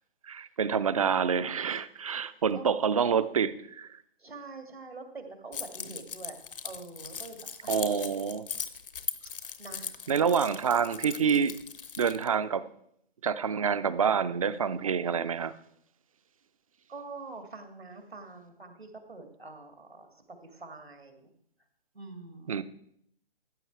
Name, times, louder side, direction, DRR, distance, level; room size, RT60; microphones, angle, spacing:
voice 1, 0.2-4.0 7.7-8.5 10.1-11.6 12.0-12.6 13.2-15.5 22.5-22.6, right 7 dB, 35° right, 14 dB, 0.5 m, -27 dB
voice 2, 4.2-6.4 6.6-7.8 9.6-10.3 16.9-21.3 21.9-22.6, right 3 dB, 85° right, 6 dB, 2.0 m, -45 dB
Keys jangling, 5.5-12.3, left 7 dB, 60° left, 1.0 m, -39 dB
14.0 x 7.8 x 4.5 m, 0.70 s
figure-of-eight pair, 135°, 30 cm